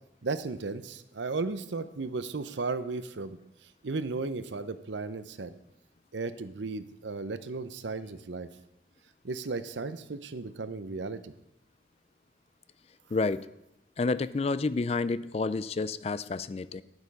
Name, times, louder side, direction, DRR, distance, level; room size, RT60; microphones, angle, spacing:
voice 1, 0.2-3.4 3.8-5.5 6.1-8.5 9.2-11.3, right 3 dB, 85° right, 12 dB, 0.7 m, -35 dB
voice 2, 13.1-13.5 14.0-16.8, left 3 dB, 35° left, 16 dB, 0.3 m, -29 dB
10.5 x 8.0 x 5.5 m, 0.82 s
head